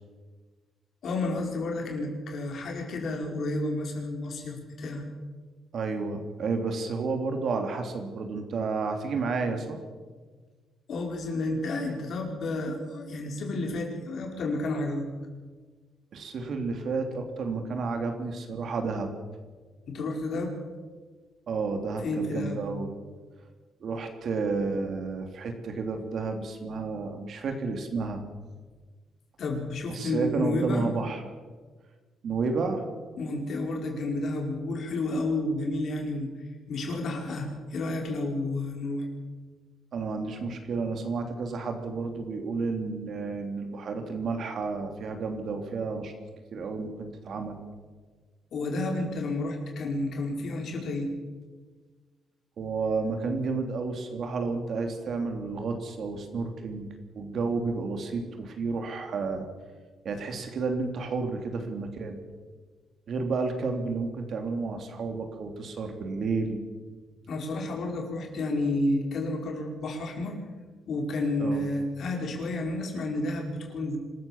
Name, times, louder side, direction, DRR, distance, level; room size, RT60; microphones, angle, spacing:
voice 1, 1.0-5.0 10.9-15.1 19.9-20.6 22.0-22.6 29.4-30.9 33.2-36.3 36.7-39.1 48.5-51.1 67.3-70.4 70.9-74.0, left 2 dB, 60° left, 2 dB, 5.1 m, -31 dB
voice 2, 5.7-9.8 16.1-19.1 21.5-22.9 23.8-28.2 29.9-31.2 32.2-32.8 39.9-46.1 46.5-47.6 52.6-56.9 57.1-59.5 60.0-62.2 63.1-66.6 71.4-71.6, right 4 dB, 60° right, 5 dB, 3.4 m, -31 dB
25.5 x 14.0 x 7.4 m, 1.4 s
cardioid pair, 90°, 0 cm